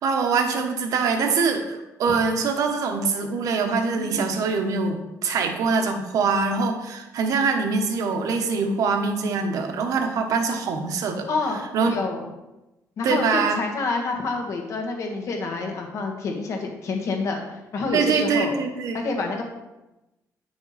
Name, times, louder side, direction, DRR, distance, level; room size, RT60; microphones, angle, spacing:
voice 1, 0.0-11.3 11.7-12.0 13.0-13.6 17.9-19.0, right 4 dB, 60° right, 4 dB, 1.1 m, -24 dB
voice 2, 11.3-12.2 13.0-18.5 18.9-19.4, left 3 dB, 50° left, 2 dB, 1.6 m, -28 dB
9.2 x 5.9 x 4.1 m, 0.99 s
cardioid pair, 170°, 7 cm